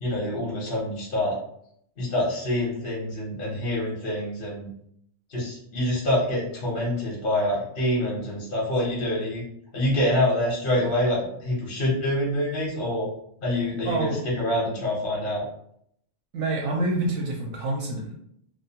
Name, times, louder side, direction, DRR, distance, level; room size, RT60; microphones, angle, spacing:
voice 1, 0.0-1.4 2.0-4.7 5.3-9.4 9.7-13.1 13.4-14.1 14.4-15.4, left 1 dB, 50° left, -5 dB, 0.9 m, -26 dB
voice 2, 13.8-14.2 16.3-18.2, right 2 dB, 75° right, -2 dB, 0.9 m, -27 dB
2.3 x 2.2 x 2.7 m, 0.70 s
omnidirectional pair, 1.3 m